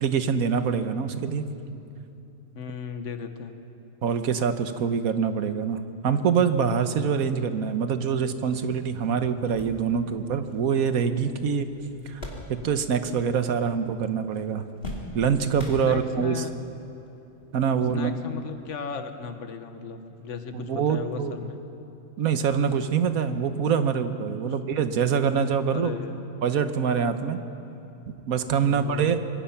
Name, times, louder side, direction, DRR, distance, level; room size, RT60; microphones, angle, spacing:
voice 1, 0.0-1.5 4.0-11.7 12.1-12.2 12.6-14.6 15.1-16.4 17.5-18.1 20.5-21.3 22.2-25.9 26.4-27.4 28.3-29.2, right 6 dB, 85° right, 9 dB, 1.4 m, -25 dB
voice 2, 2.5-3.6 15.8-16.5 17.9-21.6 24.4-24.5 25.7-26.2 28.7-29.3, left 6 dB, 60° left, 8 dB, 1.5 m, -36 dB
sound 1, 8.7-8.8 9.2-13.0 13.3-14.0 14.3-16.4 17.1-17.2 18.5-18.7, left 1 dB, 40° left, 3.1 m, -40 dB
26.0 x 22.0 x 5.8 m, 2.9 s
omnidirectional pair, 1.5 m